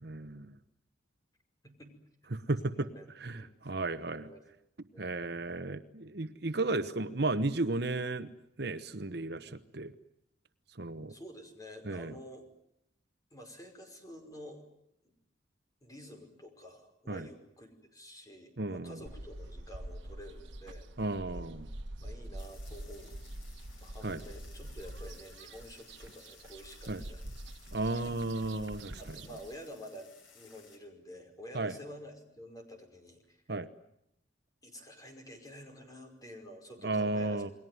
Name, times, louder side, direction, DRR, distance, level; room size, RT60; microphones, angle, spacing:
voice 1, 0.0-0.5 2.3-2.9 3.2-4.3 5.0-8.3 8.6-9.9 10.8-11.1 11.9-12.1 17.1-17.3 18.6-19.0 21.0-21.7 24.0-24.2 26.9-27.0 27.7-29.0 31.5-31.7 33.5-33.7 36.8-37.5, right 2 dB, 55° right, 10 dB, 1.1 m, -34 dB
voice 2, 1.6-2.0 2.5-3.1 3.3-3.5 4.2-4.4 4.9-5.2 11.1-12.4 13.3-14.6 15.8-20.9 22.0-23.1 23.8-27.4 27.9-28.3 29.0-33.4 34.6-37.5, equal, 20° left, 5 dB, 5.3 m, -49 dB
sound 1, 19.0-29.6, right 1 dB, 75° right, 1.6 m, -46 dB
sound 2, 22.4-30.8, left 6 dB, 90° left, 6.2 m, -59 dB
29.0 x 21.5 x 9.5 m, 0.79 s
head